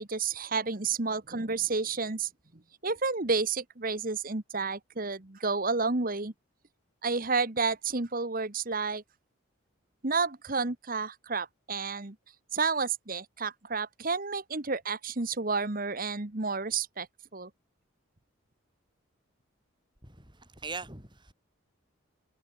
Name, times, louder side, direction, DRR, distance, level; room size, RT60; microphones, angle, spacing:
voice 1, 0.0-2.3 2.8-6.3 7.0-9.0 10.0-12.2 12.5-17.1 17.3-17.5, right 4 dB, 40° right, 1.3 m, -30 dB
voice 2, 20.0-21.3, right 4 dB, 20° right, 7.8 m, -41 dB
head